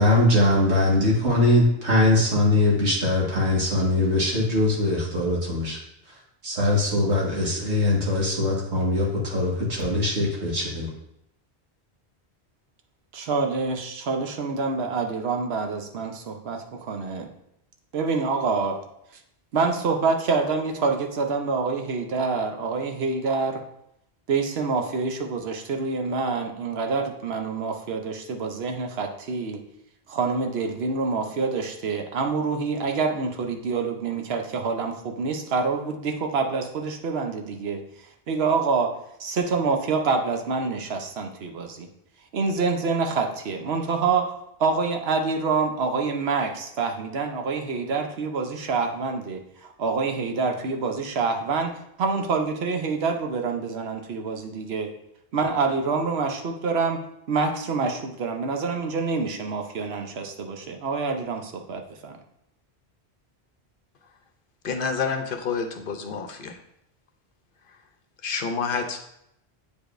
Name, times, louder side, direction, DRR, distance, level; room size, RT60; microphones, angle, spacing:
voice 1, 0.0-5.8 6.4-10.9, left 1 dB, 90° right, -4 dB, 2.0 m, -21 dB
voice 2, 13.1-17.3 17.9-18.8 19.5-23.6 24.3-29.6 30.1-37.9 38.3-38.9 39.2-41.9 42.3-44.3 44.6-51.7 52.0-54.9 55.3-57.0 57.3-62.2, right 4 dB, 70° right, 4 dB, 1.0 m, -26 dB
voice 3, 64.6-66.5 68.2-69.1, left 5 dB, 60° left, 6 dB, 0.8 m, -28 dB
8.3 x 5.0 x 2.5 m, 0.77 s
omnidirectional pair, 1.1 m